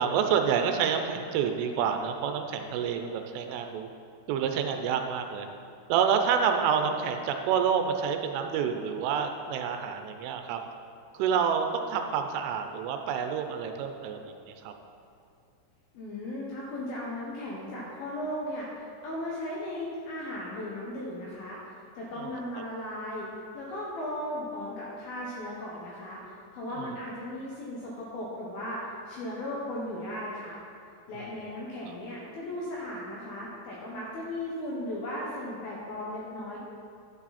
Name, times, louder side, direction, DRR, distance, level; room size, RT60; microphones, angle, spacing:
voice 1, 0.0-3.9 4.3-5.5 5.9-10.6 11.2-14.3 14.6-14.7 22.2-22.3, right 7 dB, 85° right, 5 dB, 3.1 m, -28 dB
voice 2, 15.9-18.7 19.0-21.6 21.9-23.3 23.5-28.8 29.1-30.6 31.1-36.6, left 1 dB, 70° left, -5 dB, 2.4 m, -36 dB
12.0 x 8.8 x 4.2 m, 2.5 s
omnidirectional pair, 5.7 m